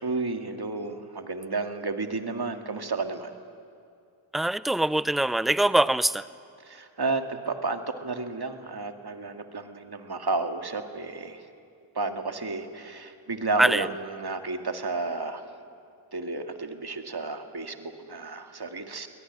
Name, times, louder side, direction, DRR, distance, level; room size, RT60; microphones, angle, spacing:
voice 1, 0.0-3.3 6.6-11.5 11.9-15.5 16.1-19.1, right 3 dB, 50° right, 7 dB, 2.1 m, -32 dB
voice 2, 4.3-6.2 13.6-13.8, right 1 dB, ahead, 17 dB, 0.6 m, -23 dB
23.5 x 18.5 x 9.8 m, 2.4 s
cardioid pair, 45°, 49 cm